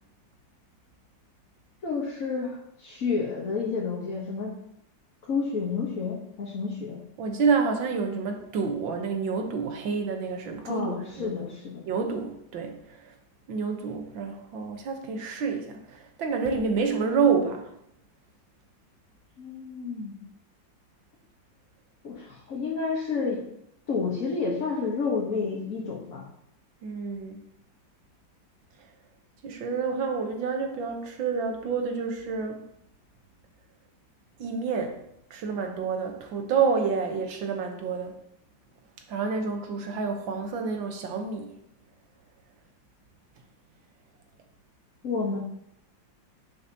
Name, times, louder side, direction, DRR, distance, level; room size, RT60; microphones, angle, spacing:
voice 1, 1.8-4.6 5.2-7.0 10.6-11.8 19.4-20.2 22.0-23.5 23.9-26.3 45.0-45.4, left 4 dB, 45° left, -5 dB, 1.7 m, -30 dB
voice 2, 7.2-11.3 11.9-12.8 13.5-17.7 26.8-27.4 29.4-32.6 34.4-35.0 35.3-38.1 39.1-41.5, right 5 dB, 85° right, 4 dB, 1.9 m, -28 dB
10.5 x 6.5 x 2.9 m, 0.77 s
omnidirectional pair, 2.0 m